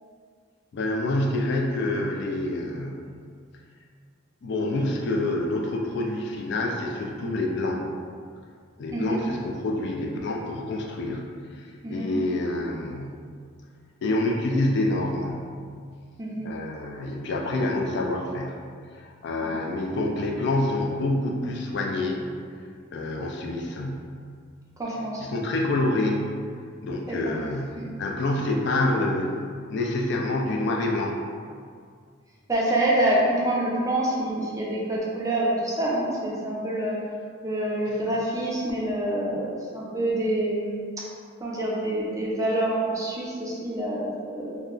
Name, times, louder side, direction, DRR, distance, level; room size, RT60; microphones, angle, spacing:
voice 1, 0.7-3.0 4.4-7.8 8.8-13.2 14.0-15.5 16.4-18.6 18.9-22.2 22.9-24.2 25.2-26.2 26.8-31.2, left 2 dB, 55° left, 1 dB, 0.3 m, -27 dB
voice 2, 16.2-16.5 19.4-19.6 24.8-25.3 27.1-27.3 32.5-37.0 37.4-40.7 41.4-44.6, right 1 dB, 15° right, -5 dB, 0.4 m, -26 dB
2.3 x 2.1 x 3.6 m, 2.1 s
head